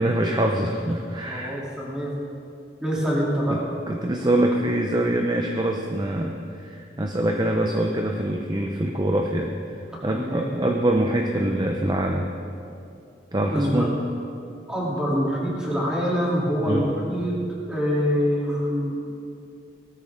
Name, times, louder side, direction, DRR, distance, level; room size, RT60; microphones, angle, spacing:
voice 1, 0.0-1.6 3.5-9.5 10.0-12.3 13.3-13.9 16.7-16.8, right 1 dB, 25° right, 2 dB, 0.7 m, -24 dB
voice 2, 1.3-2.1 2.8-3.6 10.1-10.5 13.5-13.9 14.7-17.3 17.7-19.0, equal, 5° right, -6 dB, 3.2 m, -25 dB
18.5 x 13.5 x 3.8 m, 2.6 s
head